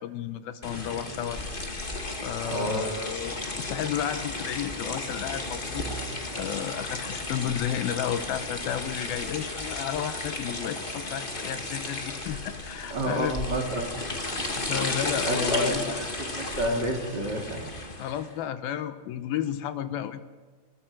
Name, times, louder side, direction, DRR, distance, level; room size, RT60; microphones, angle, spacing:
voice 1, 0.0-1.4 2.2-5.9 6.3-13.4 14.6-15.9 18.0-20.2, left 10 dB, 75° left, 11 dB, 2.6 m, -32 dB
sound 1, 0.6-18.3, left 2 dB, 30° left, 0.9 m, -34 dB
voice 2, 2.4-2.8 12.9-13.9 15.2-17.7, right 1 dB, 30° right, 1 dB, 2.6 m, -29 dB
20.0 x 19.5 x 7.6 m, 1.4 s
omnidirectional pair, 4.5 m